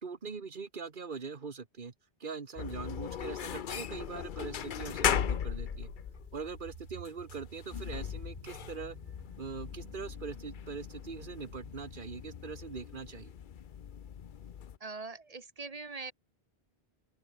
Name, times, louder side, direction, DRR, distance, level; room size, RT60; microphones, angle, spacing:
voice 1, 0.0-1.9 2.2-5.9 6.3-9.0 9.4-13.3, right 5 dB, 55° right, 1.6 m, -42 dB
sound 1, 2.6-14.8, left 8 dB, 55° left, 0.8 m, -38 dB
sound 2, 5.1-12.0, right 11 dB, 75° right, 0.9 m, -53 dB
voice 2, 14.8-16.1, right 3 dB, 40° right, 1.2 m, -42 dB
open air
omnidirectional pair, 1.0 m